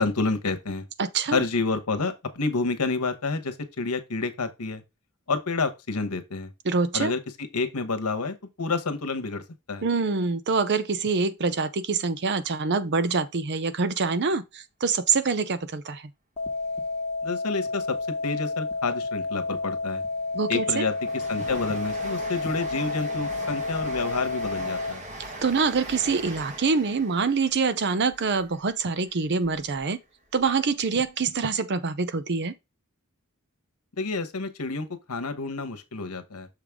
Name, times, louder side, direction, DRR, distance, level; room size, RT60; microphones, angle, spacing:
voice 1, 0.0-0.8 1.3-4.8 5.3-6.5 6.9-7.2 7.5-9.8 17.2-18.0 18.2-20.0 20.5-25.0 34.0-36.5, left 3 dB, 85° left, 1.1 m, -29 dB
voice 2, 1.0-1.4 6.6-7.1 9.8-16.1 20.3-20.8 25.4-30.0 30.3-32.5, right 4 dB, 50° right, 0.6 m, -25 dB
sound 1, 16.4-24.9, left 3 dB, 30° left, 1.2 m, -30 dB
Train, 19.7-29.8 30.3-31.2 31.4-31.5, right 1 dB, 35° right, 1.6 m, -41 dB
6.5 x 5.1 x 3.6 m
head